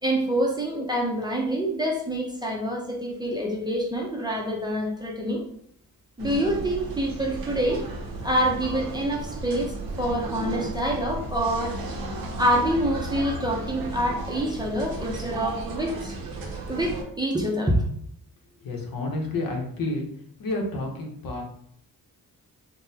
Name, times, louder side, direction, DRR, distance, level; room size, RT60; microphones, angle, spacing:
voice 1, 0.0-5.4 6.2-7.8 8.2-11.8 12.4-16.1 16.7-17.8, right 1 dB, 10° right, -1 dB, 0.5 m, -26 dB
sound 1, 6.2-17.0, right 2 dB, 85° right, 0.7 m, -34 dB
voice 2, 18.6-20.1 20.4-21.4, left 2 dB, 70° left, 1 dB, 0.8 m, -30 dB
3.7 x 2.1 x 2.7 m, 0.65 s
wide cardioid pair, 125°, 35 cm